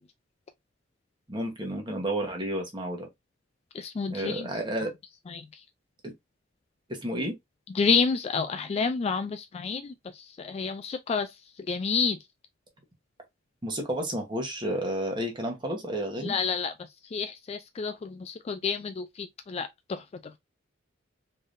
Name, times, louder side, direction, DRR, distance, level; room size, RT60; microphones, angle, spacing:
voice 1, 1.3-3.1 4.1-4.9 6.9-7.3 13.6-16.3, right 1 dB, 25° right, 1.0 m, -31 dB
voice 2, 3.7-4.5 5.3-5.6 7.7-12.2 16.2-16.7 17.1-20.4, left 5 dB, 35° left, 0.3 m, -29 dB
3.8 x 3.4 x 2.5 m
head